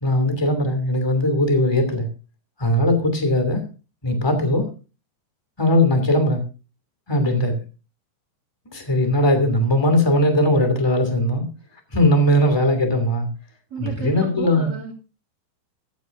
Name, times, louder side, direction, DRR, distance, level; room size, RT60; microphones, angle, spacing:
voice 1, 0.0-2.1 2.6-3.6 4.0-4.7 5.6-6.4 7.1-7.6 8.6-11.4 11.9-13.3 13.8-14.7, left 1 dB, 10° left, 6 dB, 1.4 m, -19 dB
voice 2, 13.7-14.9, right 4 dB, 30° right, 4 dB, 2.3 m, -33 dB
15.5 x 12.0 x 2.7 m, 0.33 s
omnidirectional pair, 5.3 m